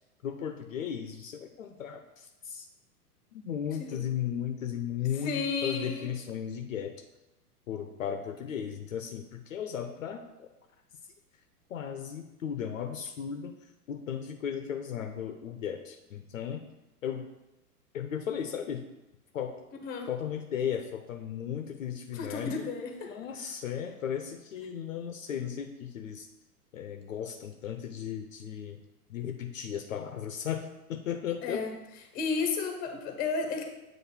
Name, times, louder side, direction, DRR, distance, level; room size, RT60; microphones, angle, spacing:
voice 1, 0.2-2.7 3.3-7.0 7.7-10.5 11.7-13.5 13.9-16.7 17.0-17.3 17.9-18.8 19.3-19.5 20.1-22.7 23.1-26.3 26.7-28.8 29.1-31.6, left 8 dB, 55° left, 6 dB, 0.6 m, -35 dB
voice 2, 5.2-6.1 19.8-20.1 22.1-23.1 31.4-31.7 32.1-33.6, left 4 dB, 20° left, 4 dB, 0.8 m, -32 dB
7.8 x 2.6 x 5.8 m, 0.98 s
figure-of-eight pair, 100°, 46 cm